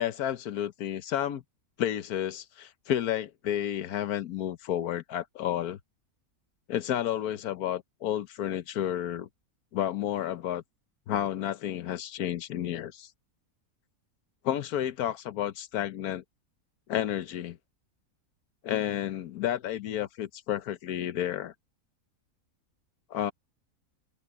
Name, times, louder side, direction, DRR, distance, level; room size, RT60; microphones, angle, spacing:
voice 1, 0.0-1.4 1.8-5.8 6.7-9.3 9.7-10.6 11.1-13.1 14.4-16.2 16.9-17.6 18.6-21.5 23.1-23.3, left 11 dB, 85° left, 1.3 m, -31 dB
open air
omnidirectional pair, 1.6 m